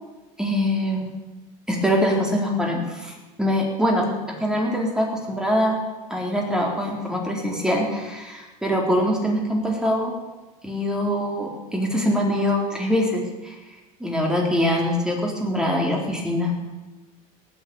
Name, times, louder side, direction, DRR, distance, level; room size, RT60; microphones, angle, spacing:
voice 1, 0.4-1.1 1.7-4.1 4.4-5.8 6.1-10.1 10.6-13.6 14.0-16.5, equal, 5° right, -1 dB, 4.0 m, -23 dB
19.0 x 8.0 x 7.1 m, 1.2 s
supercardioid pair, 115°, 18 cm